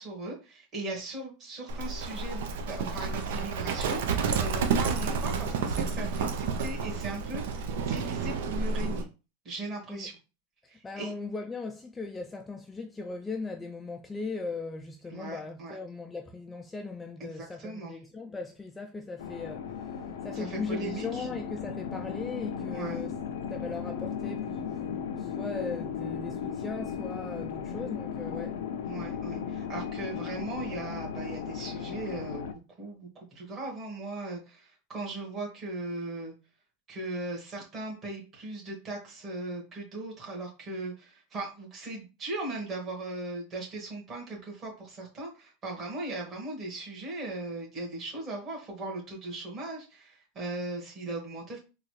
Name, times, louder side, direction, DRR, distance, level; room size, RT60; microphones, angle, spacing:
voice 1, 0.0-9.1 9.4-10.2 10.7-11.1 15.1-15.8 17.2-18.0 20.3-21.3 22.7-23.0 28.8-32.5 32.8-36.3 36.9-51.6, right 2 dB, 30° right, 1.7 m, -38 dB
Livestock farm animals working animals, 1.7-9.0, right 5 dB, 75° right, 0.6 m, -30 dB
voice 2, 10.8-19.9 20.2-23.1 23.5-28.6, left 3 dB, 10° left, 0.3 m, -38 dB
sound 1, 19.2-32.5, left 7 dB, 80° left, 0.5 m, -36 dB
3.9 x 2.3 x 3.1 m
supercardioid pair, 140°, 0 cm